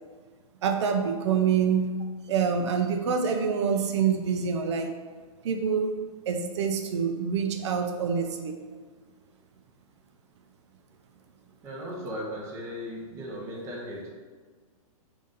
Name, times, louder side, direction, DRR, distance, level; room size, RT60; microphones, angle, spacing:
voice 1, 0.6-2.0 2.3-4.9 5.4-5.9 6.3-8.6, right 6 dB, 50° right, 6 dB, 0.4 m, -26 dB
voice 2, 11.6-14.1, equal, 15° right, -5 dB, 0.8 m, -37 dB
3.9 x 2.6 x 3.7 m, 1.4 s
hypercardioid pair, 155°, 19 cm